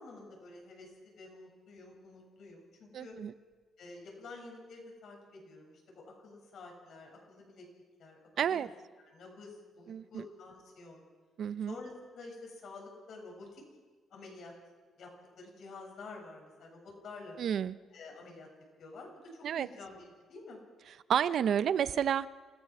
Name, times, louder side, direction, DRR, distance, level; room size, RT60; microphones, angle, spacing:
voice 1, 0.0-3.2 3.8-7.7 8.0-8.7 9.1-11.0 11.7-13.6 14.1-14.5 15.0-15.1 15.4-17.4 17.9-18.5 18.8-20.6, left 3 dB, 65° left, 1 dB, 7.1 m, -49 dB
voice 2, 2.9-3.3 8.4-8.7 9.9-10.2 11.4-11.7 17.4-17.8 19.4-19.7 21.1-22.3, right 9 dB, 65° right, 15 dB, 0.7 m, -30 dB
27.5 x 16.0 x 6.2 m, 1.4 s
cardioid pair, 105°, 0 cm